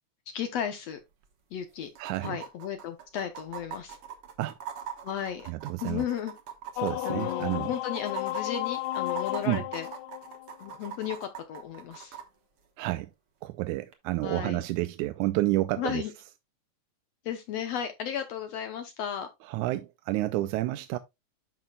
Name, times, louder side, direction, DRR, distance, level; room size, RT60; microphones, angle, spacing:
voice 1, 0.3-1.0 1.5-1.9 2.2-4.0 5.0-5.5 5.8-6.3 7.1-9.9 10.6-12.2 14.2-14.6 15.8-16.1 17.3-19.3, left 9 dB, 70° left, 1.8 m, -34 dB
sound 1, 0.9-1.0 1.2-1.3 1.9-12.2 13.9-14.0, right 8 dB, 55° right, 2.0 m, -42 dB
voice 2, 2.0-2.4 4.4-4.6 5.5-6.1 6.8-7.7 9.5-9.6 12.8-13.1 13.4-16.0 19.5-21.0, right 17 dB, 85° right, 2.0 m, -30 dB
sound 2, 6.8-11.0, left 17 dB, 85° left, 2.1 m, -33 dB
10.5 x 6.3 x 2.3 m
omnidirectional pair, 3.5 m